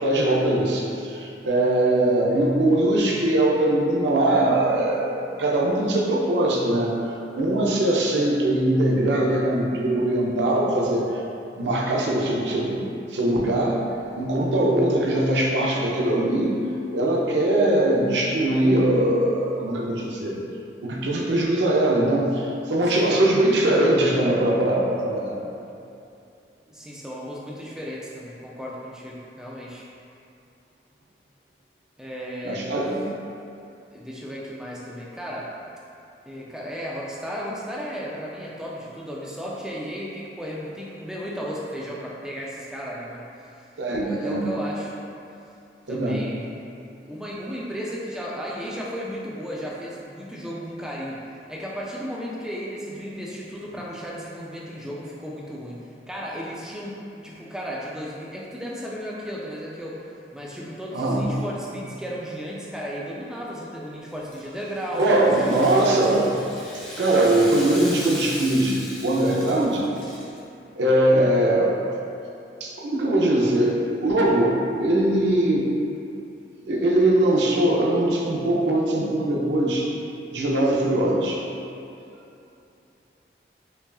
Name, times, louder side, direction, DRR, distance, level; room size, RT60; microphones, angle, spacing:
voice 1, 0.0-11.2 11.6-12.8 13.1-13.8 14.1-16.6 16.9-20.4 20.8-25.4 32.4-33.1 43.8-44.5 45.9-46.2 60.9-61.3 64.9-66.4 66.7-69.9 70.8-71.7 72.6-75.7 76.7-79.9 80.3-81.4, right 1 dB, 85° right, -2 dB, 0.5 m, -21 dB
voice 2, 26.7-29.9 32.0-32.6 33.9-35.5 36.3-43.6 44.0-44.9 45.9-46.4 47.0-51.2 51.5-55.8 56.1-57.0 57.2-60.0 60.3-65.9, equal, 5° right, -5 dB, 0.3 m, -34 dB
Rattle (instrument), 64.1-70.4, left 1 dB, 25° left, 0.8 m, -38 dB
5.3 x 2.4 x 2.3 m, 2.7 s
head